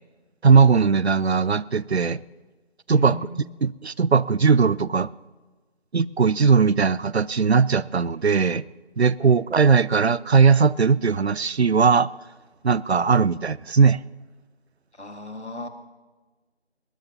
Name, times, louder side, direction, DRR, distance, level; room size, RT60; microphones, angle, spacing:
voice 1, 0.4-2.2 2.9-3.2 3.6-5.1 5.9-8.6 9.0-12.1 12.6-14.0, right 5 dB, 70° right, 21 dB, 0.5 m, -19 dB
voice 2, 2.9-3.4 9.2-9.4 15.0-15.7, left 2 dB, 80° left, 7 dB, 1.8 m, -36 dB
20.0 x 20.0 x 2.8 m, 1.3 s
figure-of-eight pair, 180°, 33 cm